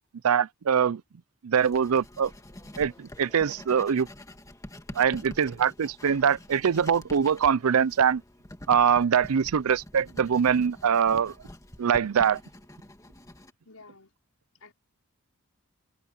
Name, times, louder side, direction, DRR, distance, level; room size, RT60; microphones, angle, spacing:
voice 1, 0.2-1.0 1.4-2.3 2.8-4.1 5.0-8.2 8.7-11.3 11.8-12.4, right 7 dB, 90° right, 0.5 m, -23 dB
Writing, 1.6-13.5, left 1 dB, 15° left, 2.2 m, -46 dB
voice 2, 13.6-14.1 14.6-14.7, left 3 dB, 85° left, 5.1 m, -51 dB
head